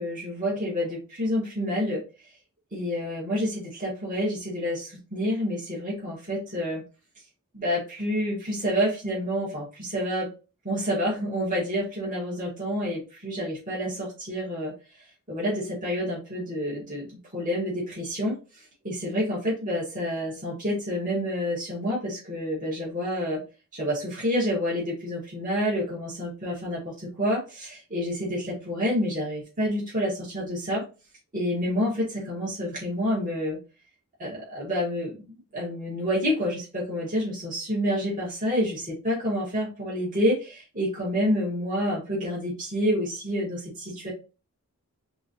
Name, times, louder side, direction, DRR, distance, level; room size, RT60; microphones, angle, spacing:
voice 1, 0.0-2.0 2.7-6.8 7.5-10.3 10.6-14.7 15.3-17.1 17.3-18.4 18.8-23.4 23.7-30.8 31.3-33.6 34.2-44.1, equal, 35° right, -6 dB, 1.9 m, -28 dB
3.8 x 3.7 x 2.8 m, 0.32 s
head